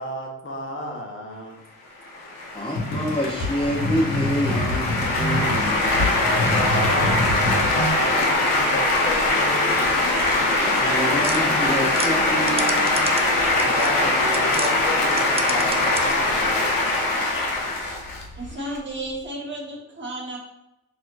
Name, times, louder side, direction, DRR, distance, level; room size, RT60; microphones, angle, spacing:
voice 1, 0.0-1.6 6.3-7.2 7.5-10.0 13.5-17.0, left 1 dB, 40° left, 0 dB, 1.0 m, -32 dB
sound 1, 2.1-18.8, left 2 dB, 90° left, 0.7 m, -22 dB
voice 2, 2.5-6.2 10.6-13.1, equal, 15° left, -3 dB, 0.6 m, -27 dB
sound 2, 2.8-7.9, left 1 dB, 70° left, 1.2 m, -27 dB
sound 3, 11.2-14.7 15.1-16.3, right 4 dB, 20° right, 0.3 m, -33 dB
voice 3, 18.3-20.4, right 1 dB, 35° right, -2 dB, 1.2 m, -33 dB
4.1 x 2.7 x 2.4 m, 0.91 s
cardioid pair, 75°, 32 cm